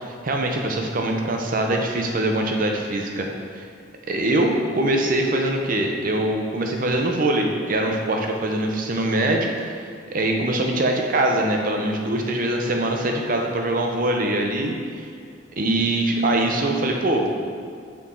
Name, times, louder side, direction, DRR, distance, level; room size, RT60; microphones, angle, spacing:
voice 1, 0.0-3.3 3.5-3.7 4.1-15.1 15.6-17.3, right 1 dB, 50° right, 2 dB, 0.7 m, -23 dB
6.1 x 4.3 x 3.8 m, 2.3 s
head